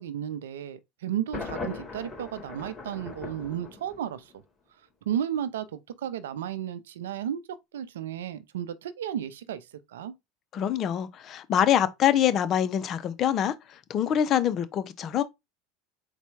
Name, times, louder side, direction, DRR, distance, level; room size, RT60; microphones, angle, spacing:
voice 1, 0.0-4.3 5.1-7.4 7.7-10.1, right 10 dB, 85° right, 0.5 m, -33 dB
Thunder, 1.3-4.3, left 4 dB, 20° left, 2.4 m, -39 dB
voice 2, 10.5-13.5 13.9-15.2, left 10 dB, 45° left, 0.6 m, -25 dB
4.1 x 2.2 x 4.5 m
hypercardioid pair, 95°, 0 cm